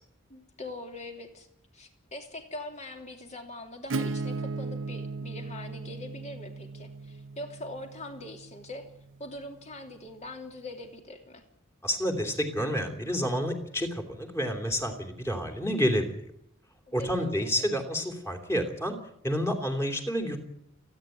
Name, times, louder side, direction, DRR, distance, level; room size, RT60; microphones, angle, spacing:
voice 1, 0.3-1.5 1.7-8.9 9.2-11.4 17.0-17.7, left 1 dB, 35° left, 4 dB, 3.1 m, -42 dB
Acoustic guitar / Strum, 3.9-9.4, right 3 dB, 70° right, 0.7 m, -37 dB
voice 2, 11.8-16.2 16.9-19.0 19.2-20.4, equal, 15° left, 4 dB, 3.1 m, -29 dB
29.0 x 10.0 x 9.2 m, 0.73 s
head